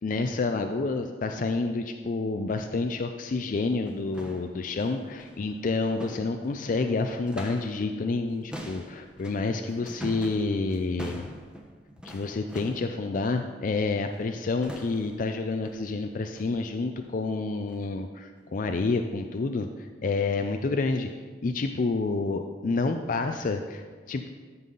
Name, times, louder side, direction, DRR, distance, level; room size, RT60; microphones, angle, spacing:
voice 1, 0.0-11.3 12.0-21.1 21.4-24.3, left 3 dB, 50° left, 6 dB, 0.4 m, -29 dB
sound 1, 3.6-7.9 8.1-13.0 14.1-14.4 14.6-15.3 15.6-15.9 16.4-16.6 16.9-17.2 17.6-17.9 18.4-18.5 19.1-19.2, equal, 5° right, 1.0 m, -44 dB
13.5 x 5.5 x 3.9 m, 1.5 s
head